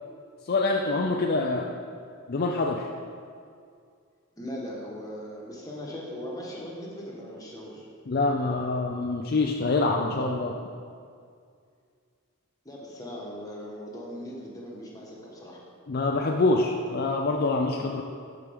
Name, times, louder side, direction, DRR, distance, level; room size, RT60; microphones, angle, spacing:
voice 1, 0.4-1.7 2.3-2.9 8.1-10.6 15.9-18.0, left 3 dB, 45° left, 1 dB, 0.4 m, -25 dB
voice 2, 4.4-7.9 12.6-15.6, equal, 15° left, -4 dB, 1.3 m, -39 dB
12.5 x 4.8 x 3.6 m, 2.3 s
head